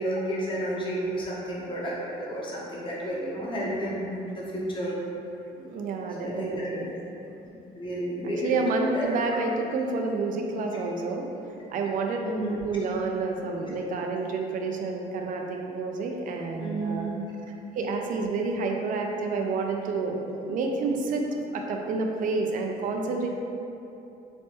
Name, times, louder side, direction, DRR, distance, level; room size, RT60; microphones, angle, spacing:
voice 1, 0.0-5.0 6.2-6.7 7.7-8.5 8.9-9.1 12.2-12.7 16.6-17.2, right 1 dB, 30° left, -5 dB, 0.7 m, -31 dB
voice 2, 5.6-7.0 8.2-11.3 11.7-12.2 12.6-17.1 17.7-23.3, right 3 dB, 50° right, 2 dB, 0.4 m, -29 dB
3.1 x 2.2 x 2.9 m, 2.8 s
cardioid pair, 110°, 17 cm